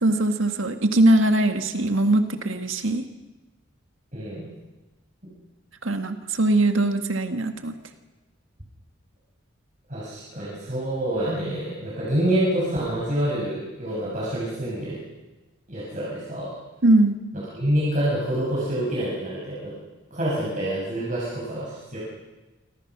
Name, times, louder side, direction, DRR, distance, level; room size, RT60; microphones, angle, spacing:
voice 1, 0.0-3.0 5.8-7.8 16.8-17.2, right 1 dB, 80° right, 6 dB, 1.9 m, -21 dB
voice 2, 4.1-4.5 9.9-15.0 15.7-16.5 17.6-19.7 20.1-22.0, right 1 dB, 40° right, -6 dB, 6.9 m, -27 dB
26.0 x 26.0 x 6.2 m, 1.1 s
head